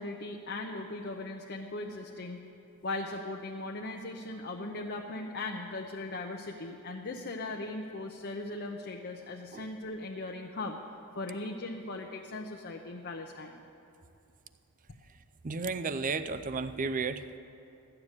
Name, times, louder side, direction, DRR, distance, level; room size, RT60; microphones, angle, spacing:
voice 1, 0.0-2.4 2.8-10.8 11.2-13.6, left 2 dB, 50° left, 1 dB, 0.8 m, -38 dB
voice 2, 15.4-17.4, right 4 dB, 40° right, 12 dB, 0.5 m, -33 dB
13.5 x 6.9 x 9.8 m, 2.7 s
head